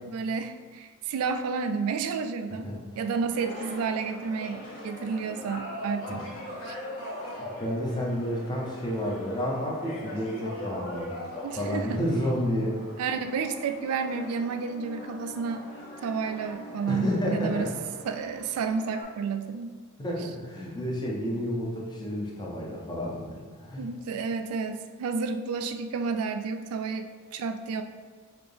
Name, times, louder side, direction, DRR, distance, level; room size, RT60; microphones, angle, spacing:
voice 1, 0.1-2.7 3.0-6.3 6.6-6.8 11.4-12.0 13.0-15.7 16.0-17.7 18.1-19.8 23.8-27.8, right 5 dB, 85° right, 8 dB, 0.3 m, -31 dB
sound 1, 3.3-19.0, left 1 dB, 65° left, 1.4 m, -41 dB
voice 2, 7.2-11.1 11.6-12.8 16.9-17.7 20.0-23.9, equal, 20° left, -3 dB, 0.6 m, -30 dB
4.2 x 2.8 x 3.3 m, 1.5 s
head